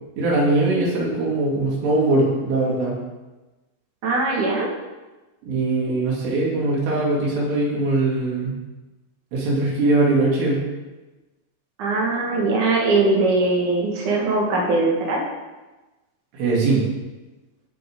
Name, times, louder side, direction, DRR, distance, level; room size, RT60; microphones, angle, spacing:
voice 1, 0.2-3.0 5.4-8.6 9.3-10.6 16.4-16.8, right 2 dB, 75° right, -4 dB, 5.3 m, -21 dB
voice 2, 4.0-4.7 11.8-15.2, right 3 dB, 55° right, -2 dB, 2.4 m, -21 dB
17.5 x 7.5 x 3.7 m, 1.1 s
omnidirectional pair, 5.6 m